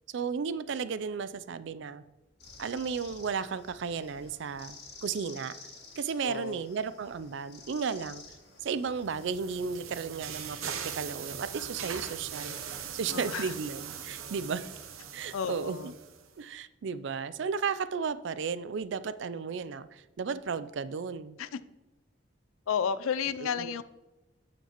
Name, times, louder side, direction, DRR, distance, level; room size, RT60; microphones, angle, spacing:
voice 1, 0.1-2.0 2.6-5.5 6.0-8.2 8.6-12.6 12.9-14.7 15.1-15.8 16.4-21.4 23.4-23.8, right 5 dB, 60° right, 15 dB, 0.4 m, -34 dB
sound 1, 2.4-9.3, left 4 dB, 50° left, 2.0 m, -51 dB
voice 2, 6.2-6.6 13.1-13.5 15.3-15.9 21.4-21.5 22.7-23.8, left 7 dB, 85° left, 15 dB, 0.4 m, -32 dB
sound 2, 8.7-16.3, right 7 dB, 85° right, 0.8 m, -41 dB
8.8 x 7.2 x 2.9 m, 1.1 s
head